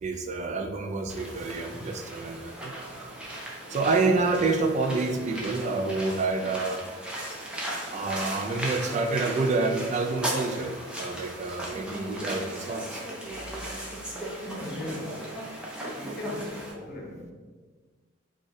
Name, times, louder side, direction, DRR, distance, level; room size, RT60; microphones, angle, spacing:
voice 1, 0.0-2.7 3.7-6.8 7.9-13.0 16.0-16.2, right 3 dB, 35° right, 5 dB, 0.3 m, -28 dB
sound 1, 1.1-16.7, right 1 dB, 5° right, 0.7 m, -37 dB
voice 2, 14.4-15.3 15.9-17.3, left 1 dB, 50° left, -1 dB, 0.9 m, -38 dB
4.8 x 2.4 x 4.2 m, 1.4 s
head